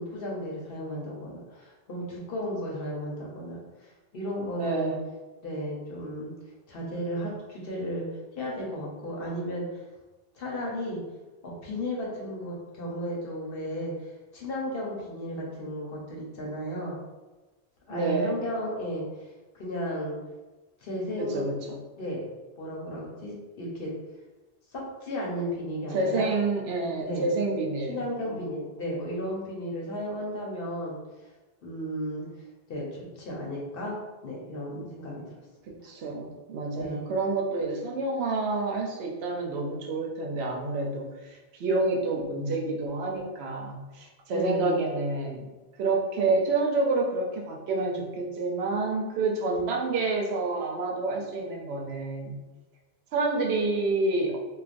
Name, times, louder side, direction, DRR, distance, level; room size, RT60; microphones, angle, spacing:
voice 1, 0.0-3.6 4.1-5.0 5.4-6.3 6.7-8.1 8.4-9.8 10.4-11.0 11.4-13.9 14.3-16.9 17.9-19.3 19.6-20.2 20.8-21.5 22.0-22.3 22.6-23.9 24.7-26.3 27.0-27.3 27.9-31.0 31.6-32.2 32.7-34.0 34.2-35.2 35.8-35.9 36.7-37.0 44.3-44.8, equal, 65° left, -3 dB, 0.9 m, -34 dB
voice 2, 4.5-5.0 17.9-18.3 21.2-21.8 25.9-28.0 28.2-28.5 35.7-45.5 45.8-52.4 53.1-54.4, right 3 dB, 80° right, 0 dB, 0.8 m, -28 dB
3.1 x 2.2 x 2.5 m, 1.2 s
omnidirectional pair, 1.1 m